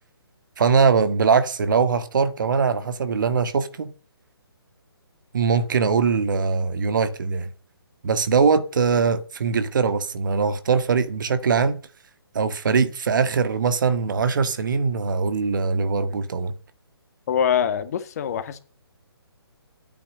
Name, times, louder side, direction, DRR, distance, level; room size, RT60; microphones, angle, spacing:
voice 1, 0.6-3.9 5.3-7.5 8.0-11.8 12.3-16.5, right 5 dB, 50° right, 1.7 m, -21 dB
voice 2, 17.3-18.6, left 8 dB, 40° left, 1.8 m, -24 dB
12.0 x 9.6 x 7.7 m
figure-of-eight pair, 140°, 13 cm